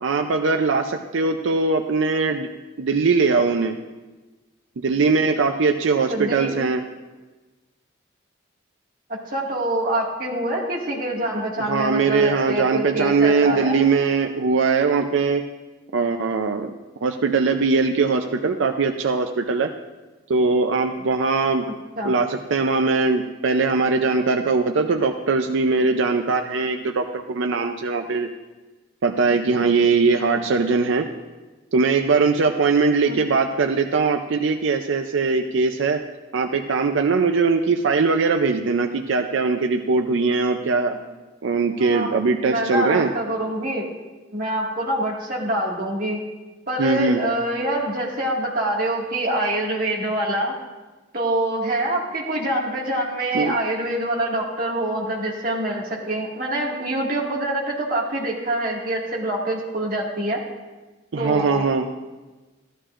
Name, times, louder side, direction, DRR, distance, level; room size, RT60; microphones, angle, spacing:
voice 1, 0.0-2.5 2.8-3.7 4.8-6.8 11.6-15.5 15.9-16.7 17.0-19.7 20.3-21.7 22.0-28.3 29.0-31.1 31.7-36.0 36.3-40.9 41.4-43.1 46.8-47.2 53.3-53.5 61.1-61.9, right 4 dB, 90° right, 5 dB, 0.5 m, -21 dB
voice 2, 6.1-6.6 9.1-13.8 22.0-22.1 33.0-33.2 40.9-41.0 41.8-42.1 42.4-43.9 44.3-46.2 46.7-50.6 51.1-60.4 61.2-61.7, right 1 dB, 45° right, -3 dB, 1.9 m, -25 dB
14.0 x 12.5 x 2.5 m, 1.2 s
head